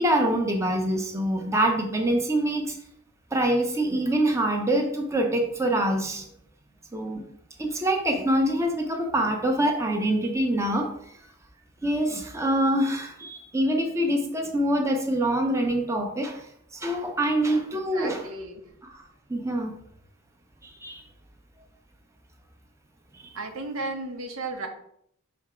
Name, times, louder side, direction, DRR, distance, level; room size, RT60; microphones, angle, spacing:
voice 1, 0.0-2.8 3.3-6.3 6.9-7.2 7.6-11.2 11.8-18.3 18.9-19.0 19.3-19.7 20.6-21.0 23.1-23.4, right 1 dB, 15° right, 2 dB, 0.7 m, -25 dB
voice 2, 17.7-18.6 23.3-24.7, right 2 dB, 85° right, 4 dB, 1.0 m, -34 dB
5.7 x 3.5 x 4.9 m, 0.69 s
head